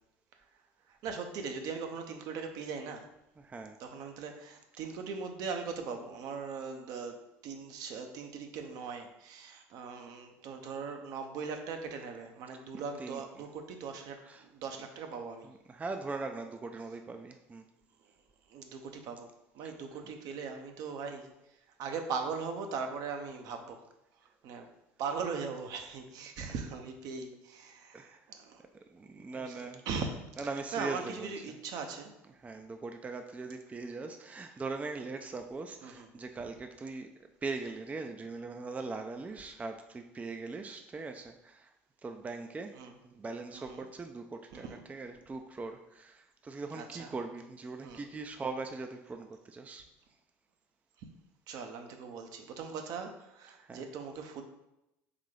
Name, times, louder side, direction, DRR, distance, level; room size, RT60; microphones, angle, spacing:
voice 1, 0.9-3.1 3.8-15.5 18.5-23.8 24.4-24.7 25.0-28.6 29.3-32.1 35.8-36.1 42.7-42.9 43.5-43.9 44.5-44.8 46.7-47.1 47.8-48.0 51.0-51.1 51.5-54.4, right 5 dB, 60° right, 5 dB, 0.7 m, -40 dB
voice 2, 3.4-3.8 13.0-13.2 14.3-14.4 15.7-17.6 27.9-28.2 28.9-29.8 30.4-31.3 32.4-37.1 37.4-41.7 42.0-42.7 43.0-49.8 53.6-53.8, right 3 dB, 20° right, 5 dB, 0.4 m, -40 dB
3.9 x 3.6 x 3.2 m, 0.87 s
hypercardioid pair, 70°, 7 cm